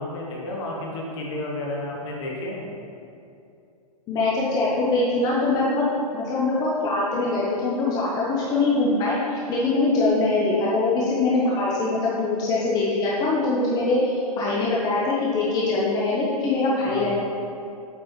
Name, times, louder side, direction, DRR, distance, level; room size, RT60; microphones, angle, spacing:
voice 1, 0.0-2.7 16.9-17.1, left 1 dB, 45° left, -1 dB, 1.4 m, -31 dB
voice 2, 4.1-5.8 6.1-17.1, left 3 dB, 20° left, -6 dB, 0.8 m, -23 dB
8.5 x 4.4 x 3.2 m, 2.6 s
hypercardioid pair, 145°, 20 cm